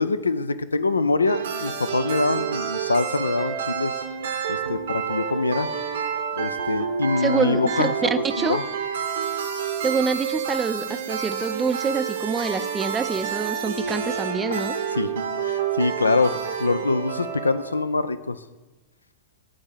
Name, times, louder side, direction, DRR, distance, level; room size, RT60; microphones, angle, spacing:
voice 1, 0.0-3.9 4.5-5.7 6.4-7.9 8.4-8.6 14.5-14.6 14.9-15.1 15.4-18.4, left 3 dB, 80° left, 14 dB, 0.3 m, -24 dB
sound 1, 1.2-17.8, right 7 dB, 65° right, 0.8 m, -29 dB
voice 2, 7.2-8.6 9.8-14.7, right 5 dB, 15° right, 12 dB, 0.4 m, -26 dB
8.7 x 3.6 x 6.6 m, 1.2 s
figure-of-eight pair, 90°, 0 cm